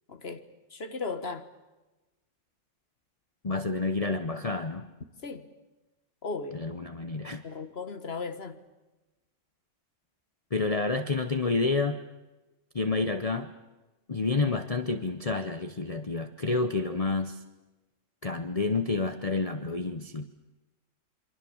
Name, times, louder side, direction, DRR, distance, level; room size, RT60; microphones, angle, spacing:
voice 1, 0.1-0.4 0.7-1.4 5.2-5.5 6.2-6.6 7.4-8.6, left 4 dB, 50° left, 9 dB, 1.9 m, -36 dB
voice 2, 3.4-4.9 6.5-7.4 10.5-12.0 12.7-13.5 14.1-17.4 18.2-20.3, left 3 dB, 30° left, 9 dB, 0.9 m, -29 dB
27.5 x 24.0 x 7.2 m, 1.1 s
omnidirectional pair, 1.3 m